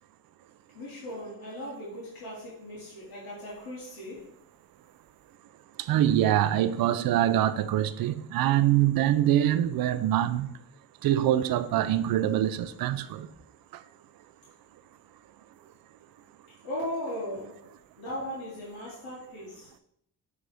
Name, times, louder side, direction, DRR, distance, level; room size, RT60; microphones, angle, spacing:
voice 1, 0.7-4.3 16.6-17.6 18.0-19.7, equal, 85° left, 2.6 m, -37 dB
voice 2, 5.8-10.5 11.0-13.3 13.7-13.8, right 12 dB, 85° right, 0.5 m, -24 dB
9.6 x 4.0 x 3.5 m
cardioid pair, 115°, 34 cm